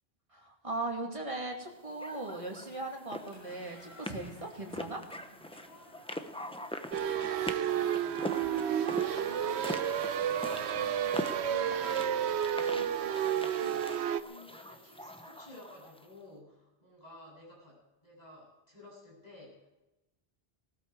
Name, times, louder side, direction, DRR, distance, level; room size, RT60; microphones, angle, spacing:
voice 1, 0.3-5.0, right 2 dB, 30° right, 0 dB, 2.6 m, -38 dB
sound 1, 2.0-16.1, left 1 dB, 5° left, 0.7 m, -43 dB
sound 2, 3.2-11.7, right 1 dB, 90° left, 5.1 m, -55 dB
voice 2, 6.4-19.7, left 1 dB, 40° left, -4 dB, 8.1 m, -53 dB
sound 3, 6.9-14.2, right 9 dB, 80° right, 0.9 m, -31 dB
19.5 x 13.0 x 4.7 m, 0.99 s
omnidirectional pair, 1.1 m